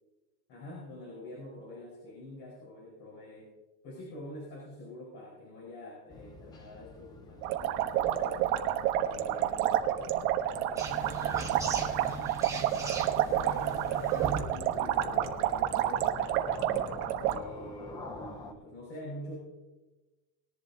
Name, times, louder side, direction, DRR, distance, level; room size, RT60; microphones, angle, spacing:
voice 1, 0.5-3.5 3.8-8.6 9.0-9.6 9.9-10.1 10.9-12.2 12.7-16.9 17.3-19.3, left 1 dB, 50° left, -5 dB, 4.8 m, -46 dB
sound 1, 6.1-18.5, left 3 dB, 10° left, 0.3 m, -48 dB
sound 2, 7.4-17.4, right 11 dB, 85° right, 1.3 m, -29 dB
sound 3, 10.8-14.4, right 4 dB, 5° right, 1.1 m, -38 dB
20.0 x 11.0 x 2.8 m, 1.2 s
cardioid pair, 170°, 43 cm